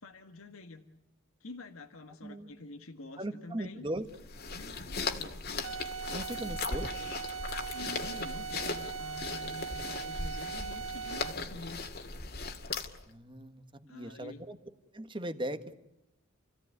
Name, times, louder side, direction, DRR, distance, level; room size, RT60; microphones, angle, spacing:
voice 1, 0.0-0.8 1.4-3.8 4.4-5.4 6.4-6.8 7.7-11.8 13.9-14.4, left 2 dB, 85° left, 5 dB, 1.7 m, -47 dB
voice 2, 3.2-4.1 6.1-6.9 13.1-14.6 14.9-15.7, right 1 dB, 25° right, 9 dB, 1.5 m, -38 dB
sound 1, 4.1-13.1, left 4 dB, 50° left, 2.3 m, -38 dB
sound 2, 5.6-11.5, right 6 dB, 75° right, 1.3 m, -40 dB
30.0 x 16.5 x 9.6 m, 0.89 s
head